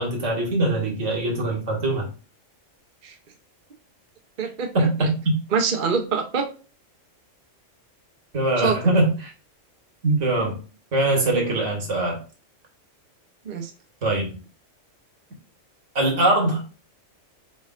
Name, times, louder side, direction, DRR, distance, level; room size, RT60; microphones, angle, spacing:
voice 1, 0.0-2.1 4.7-5.4 8.3-9.3 10.0-10.6 10.9-12.2 14.0-14.3 16.0-16.6, right 2 dB, 70° right, 1 dB, 2.1 m, -22 dB
voice 2, 4.4-5.1 5.5-6.5 8.6-8.8 13.5-13.7, right 5 dB, 45° right, 3 dB, 0.9 m, -25 dB
4.7 x 4.3 x 2.4 m, 0.35 s
omnidirectional pair, 1.3 m